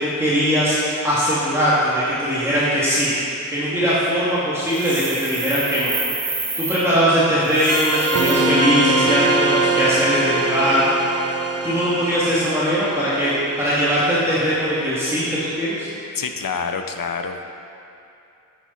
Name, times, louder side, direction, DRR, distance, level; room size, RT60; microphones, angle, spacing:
voice 1, 0.0-6.0 6.3-11.1 11.6-15.9, equal, 10° right, -11 dB, 2.6 m, -20 dB
sound 1, 4.7-6.8 7.4-8.3, right 3 dB, 85° right, 1.9 m, -29 dB
sound 2, 7.7-14.8, right 2 dB, 50° right, 1.1 m, -23 dB
voice 2, 16.1-17.4, left 5 dB, 80° left, 6 dB, 0.7 m, -27 dB
10.0 x 8.9 x 4.2 m, 2.6 s
cardioid pair, 50°, 33 cm